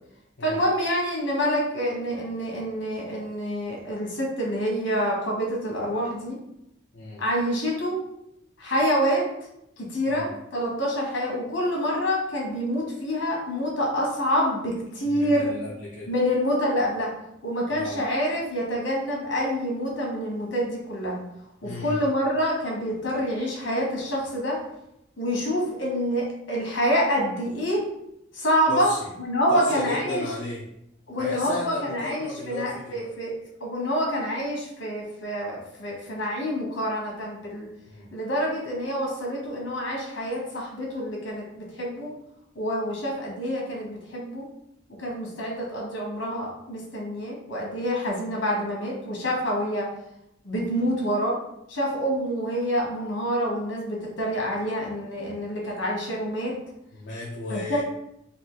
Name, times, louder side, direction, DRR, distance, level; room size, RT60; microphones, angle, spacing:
voice 1, 0.4-6.4 7.2-8.0 8.6-9.2 9.8-15.5 16.1-17.1 17.4-21.2 21.6-24.6 25.2-27.8 28.3-28.9 29.2-30.3 31.1-33.3 33.6-37.7 38.1-42.1 42.5-44.4 45.0-49.9 50.4-51.4 51.7-56.5 57.5-57.8, equal, 85° left, -2 dB, 1.5 m, -27 dB
voice 2, 15.0-16.1 17.7-18.0 21.6-22.0 28.7-29.1 29.5-30.6 31.2-33.1 37.9-38.1 56.9-57.8, left 1 dB, 70° left, -6 dB, 0.7 m, -34 dB
4.0 x 2.5 x 3.9 m, 0.82 s
head